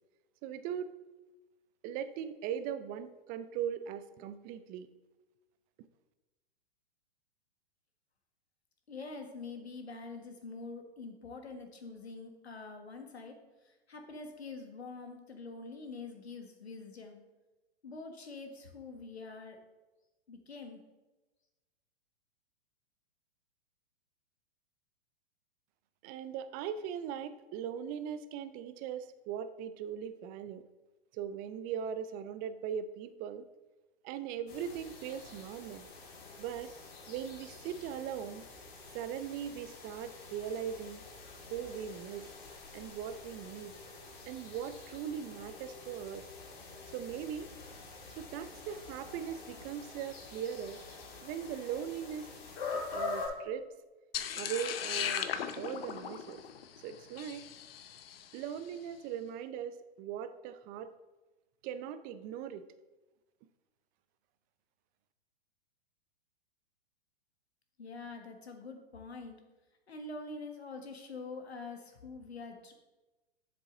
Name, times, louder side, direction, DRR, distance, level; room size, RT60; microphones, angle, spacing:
voice 1, 0.4-0.9 1.8-4.9 26.0-30.6 31.1-33.4 34.0-35.9 36.4-36.7 37.1-38.4 38.9-41.1 41.5-42.3 42.7-43.7 44.3-46.3 46.9-47.5 48.2-50.8 51.2-52.3 52.7-53.7 54.4-55.3 55.6-56.4 56.8-57.5 58.3-60.9 61.6-62.6, right 8 dB, 30° right, 12 dB, 0.5 m, -39 dB
voice 2, 8.9-13.4 13.6-17.2 17.8-19.6 20.3-20.8 67.8-69.4 69.9-72.7, left 3 dB, 90° left, 5 dB, 1.5 m, -45 dB
sound 1, 34.5-53.3, left 3 dB, 40° left, 2.6 m, -46 dB
sound 2, 54.1-58.4, left 9 dB, 65° left, 0.8 m, -38 dB
7.6 x 6.8 x 3.8 m, 1.1 s
hypercardioid pair, 115°, 31 cm